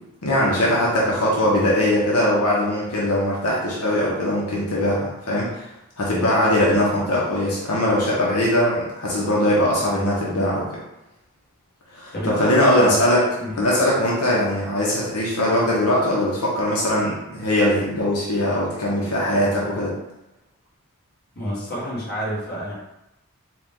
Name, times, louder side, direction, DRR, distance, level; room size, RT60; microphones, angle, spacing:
voice 1, 0.2-5.7 6.0-10.6 11.9-13.3 13.6-19.9, left 1 dB, 85° left, -5 dB, 1.0 m, -21 dB
voice 2, 12.1-13.0 13.4-13.6 21.3-22.7, equal, 45° left, -6 dB, 1.5 m, -29 dB
4.7 x 2.4 x 3.8 m, 0.92 s
head